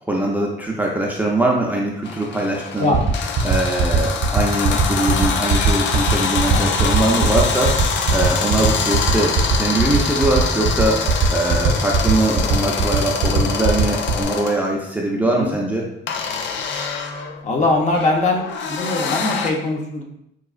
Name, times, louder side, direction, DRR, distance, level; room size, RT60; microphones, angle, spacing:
voice 1, 0.0-3.0 3.4-15.9, right 1 dB, 10° right, -2 dB, 0.5 m, -22 dB
sound 1, 2.0-14.6 16.1-19.5, left 5 dB, 70° left, 0.4 m, -25 dB
sound 2, 2.9-14.2, right 6 dB, 55° right, 0.5 m, -18 dB
voice 2, 15.2-15.6 17.4-20.0, left 2 dB, 35° left, 1 dB, 0.8 m, -21 dB
4.7 x 2.3 x 2.4 m, 0.78 s
cardioid pair, 90°, 20 cm